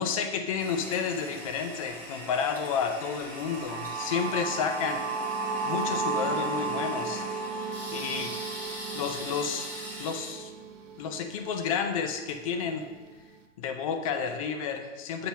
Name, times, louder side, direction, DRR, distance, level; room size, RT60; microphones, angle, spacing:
voice 1, 0.0-5.1 5.6-7.3 7.9-8.3 8.9-9.7 10.0-10.5 11.0-12.9 13.6-15.3, left 6 dB, 30° left, 6 dB, 0.4 m, -31 dB
Toilet flush, 0.6-13.2, equal, 5° left, 0.9 m, -43 dB
sound 1, 3.3-11.2, right 4 dB, 70° right, 0.8 m, -34 dB
7.4 x 2.9 x 5.6 m, 1.3 s
hypercardioid pair, 150°, 39 cm